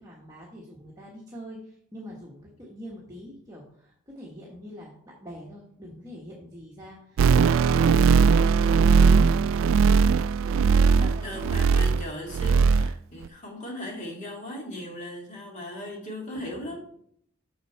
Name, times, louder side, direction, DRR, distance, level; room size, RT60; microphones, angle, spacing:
voice 1, 0.0-8.1 8.4-9.2 10.4-10.5 10.9-11.8 16.3-16.9, equal, 15° right, -4 dB, 1.2 m, -44 dB
sound 1, 7.2-12.1 12.3-12.9 13.2-13.3, right 5 dB, 70° right, 0.3 m, -19 dB
voice 2, 10.7-16.9, left 1 dB, 35° left, -1 dB, 2.2 m, -38 dB
6.6 x 6.2 x 4.3 m, 0.67 s
head